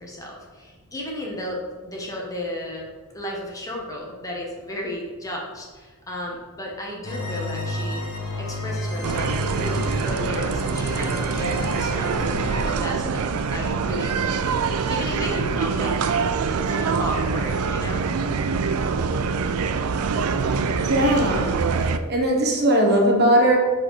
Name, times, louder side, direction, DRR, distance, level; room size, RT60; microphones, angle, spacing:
voice 1, 0.0-8.0 8.4-15.9 16.7-18.1, left 1 dB, 15° left, -2 dB, 1.0 m, -34 dB
sound 1, 7.0-12.7, left 1 dB, 85° left, 1.1 m, -31 dB
sound 2, 9.0-22.0, right 5 dB, 80° right, 0.4 m, -24 dB
voice 2, 20.8-21.5 21.8-23.6, right 1 dB, 50° right, 0 dB, 1.1 m, -19 dB
7.5 x 4.2 x 3.1 m, 1.4 s
head